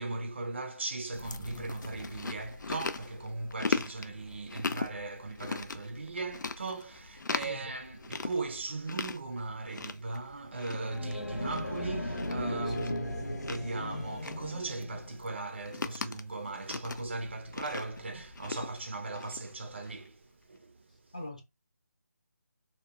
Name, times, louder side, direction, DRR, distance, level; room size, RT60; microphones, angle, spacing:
voice 1, 0.0-20.9, right 3 dB, 40° right, 0.4 m, -38 dB
Chewing mastication, 1.1-20.1, left 4 dB, 90° left, 0.4 m, -40 dB
voice 2, 7.4-7.6 12.6-12.9 21.1-21.4, left 2 dB, 20° left, 0.5 m, -42 dB
sound 1, 10.5-15.2, left 1 dB, 65° left, 0.9 m, -37 dB
2.7 x 2.1 x 2.4 m
figure-of-eight pair, 175°, 10 cm